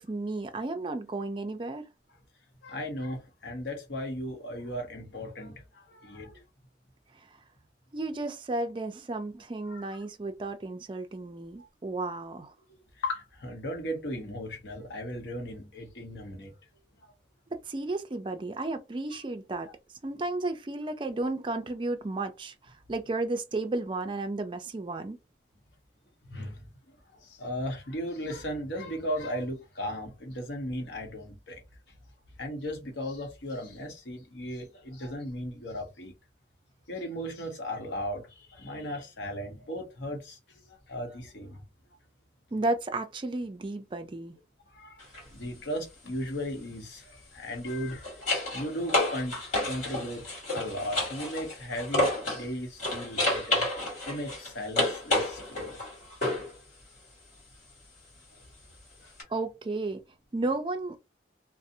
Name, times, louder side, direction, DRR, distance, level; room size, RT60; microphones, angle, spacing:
voice 1, 0.0-1.8 7.9-12.5 17.5-19.7 20.0-25.2 42.5-44.4 59.3-60.0 60.3-61.0, right 2 dB, 25° right, 0.4 m, -33 dB
voice 2, 2.6-6.4 9.7-9.9 13.0-16.5 19.6-19.7 26.2-27.0 27.2-31.6 32.4-36.1 36.9-40.4 40.7-41.6 44.7-45.0 45.3-48.1 48.5-49.3 49.6-50.2 50.5-53.7 54.1-55.8 59.0-59.1, equal, 80° left, 0.8 m, -36 dB
sound 1, 45.0-45.2 47.5-52.5 52.8-56.5 59.2-59.3, left 1 dB, 45° left, 1.5 m, -30 dB
2.5 x 2.0 x 2.6 m
head